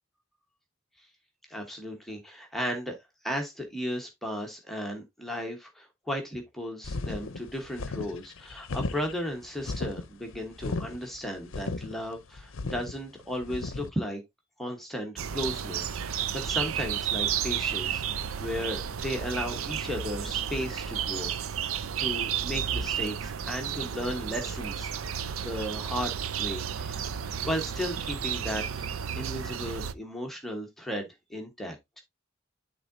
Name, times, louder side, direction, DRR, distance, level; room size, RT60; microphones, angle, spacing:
voice 1, 1.5-3.0 3.2-14.2 14.6-18.0 18.4-21.6 22.0-24.9 25.4-28.9 29.1-32.0, equal, ahead, 1.1 m, -35 dB
sound 1, 6.8-13.9, left 3 dB, 70° left, 0.6 m, -36 dB
sound 2, 15.2-29.9, right 8 dB, 85° right, 0.5 m, -32 dB
11.5 x 3.8 x 2.6 m
head